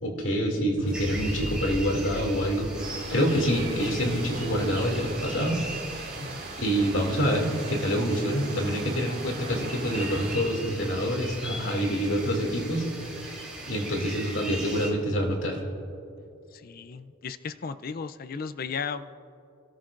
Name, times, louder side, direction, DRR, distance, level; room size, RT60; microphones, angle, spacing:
voice 1, 0.0-2.7 3.1-5.6 6.6-12.9 13.7-15.6, equal, 65° left, 1 dB, 2.5 m, -26 dB
sound 1, 0.8-6.9, equal, 85° left, 2.8 m, -40 dB
sound 2, 0.9-14.9, right 2 dB, 5° right, 3.3 m, -40 dB
sound 3, 2.8-10.4, right 3 dB, 55° right, 3.9 m, -41 dB
voice 2, 16.5-19.1, left 5 dB, 45° left, 12 dB, 0.4 m, -35 dB
29.5 x 13.0 x 2.5 m, 2.8 s
head